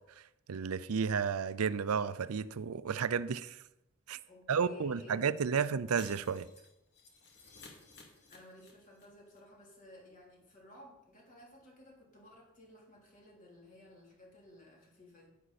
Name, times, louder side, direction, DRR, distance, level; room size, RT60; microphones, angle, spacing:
voice 1, 0.5-3.6 4.1-4.2 4.5-6.5, right 6 dB, 90° right, 0.5 m, -32 dB
voice 2, 4.3-5.7 8.0-15.3, left 1 dB, 35° left, 3.3 m, -56 dB
Shatter, 6.0-9.0 9.3-9.4 9.7-9.8, left 3 dB, 55° left, 2.5 m, -55 dB
11.0 x 9.9 x 4.2 m
head